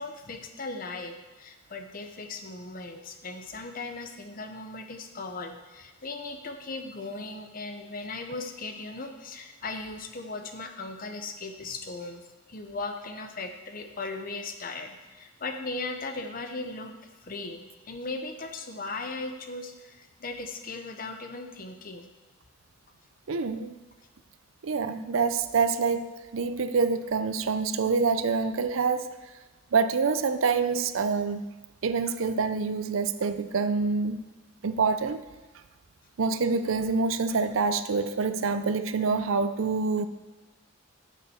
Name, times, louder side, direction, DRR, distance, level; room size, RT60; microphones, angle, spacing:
voice 1, 0.0-12.2 12.5-16.9 17.2-22.1, left 3 dB, 45° left, 6 dB, 0.8 m, -38 dB
voice 2, 23.3-23.8 24.6-29.1 29.7-31.4 31.8-34.2 34.6-35.2 36.2-40.1, right 4 dB, 85° right, 11 dB, 0.5 m, -26 dB
10.0 x 7.2 x 4.3 m, 1.2 s
head